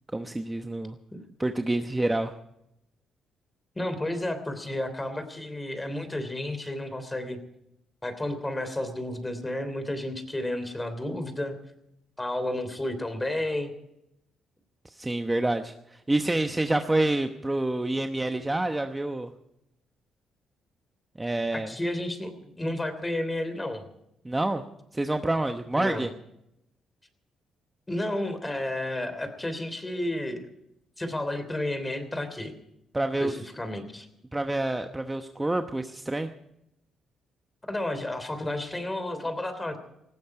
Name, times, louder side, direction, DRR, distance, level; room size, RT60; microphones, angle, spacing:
voice 1, 0.1-1.0 1.4-2.3 15.0-15.7 16.1-19.3 21.2-21.7 24.2-24.6 24.9-26.1 32.9-33.4 34.3-36.3, right 2 dB, 15° right, 6 dB, 1.0 m, -27 dB
voice 2, 3.7-7.4 8.0-11.6 12.2-13.7 21.5-23.8 25.8-26.1 27.9-30.5 31.0-32.5 33.2-34.1 37.7-39.8, left 1 dB, 15° left, 10 dB, 3.2 m, -31 dB
19.0 x 16.0 x 4.8 m, 0.82 s
cardioid pair, 90°, 0 cm